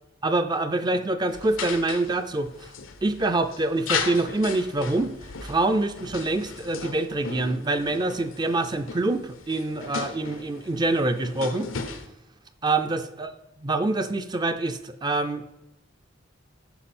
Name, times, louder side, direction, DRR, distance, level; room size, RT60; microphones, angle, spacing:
voice 1, 0.2-2.7 3.0-5.1 5.4-11.7 12.6-13.3 13.6-15.6, right 2 dB, 20° right, 9 dB, 0.4 m, -25 dB
sound 1, 1.3-12.1, left 5 dB, 85° left, 0.9 m, -36 dB
11.5 x 4.8 x 4.3 m, 0.91 s
head